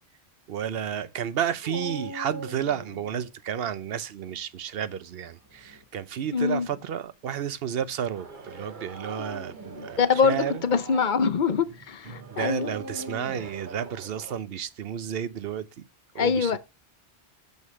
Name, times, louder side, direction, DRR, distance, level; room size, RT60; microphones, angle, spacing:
voice 1, 0.5-10.6 12.3-15.8 16.1-16.6, right 9 dB, 70° right, 0.9 m, -32 dB
Dog, 1.6-3.3 5.4-5.9 6.6-6.7 8.9-10.1 12.6-13.6, equal, 20° right, 1.2 m, -40 dB
voice 2, 6.3-6.7 9.7-12.8 16.2-16.6, left 5 dB, 50° left, 0.8 m, -24 dB
sound 1, 8.1-14.4, right 4 dB, 50° right, 1.1 m, -44 dB
6.4 x 5.3 x 6.2 m
omnidirectional pair, 1.1 m